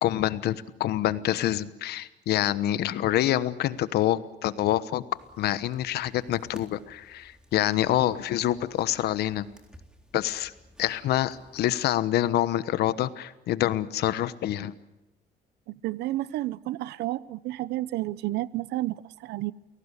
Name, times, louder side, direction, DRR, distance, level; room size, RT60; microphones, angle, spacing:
voice 1, 0.0-5.0 5.4-9.5 10.1-10.5 10.8-14.7, left 13 dB, 70° left, 1.2 m, -26 dB
sound 1, 5.1-11.7, equal, 5° right, 3.7 m, -54 dB
voice 2, 15.7-19.5, right 16 dB, 80° right, 0.8 m, -31 dB
29.0 x 18.0 x 8.3 m
cardioid pair, 110°, 17 cm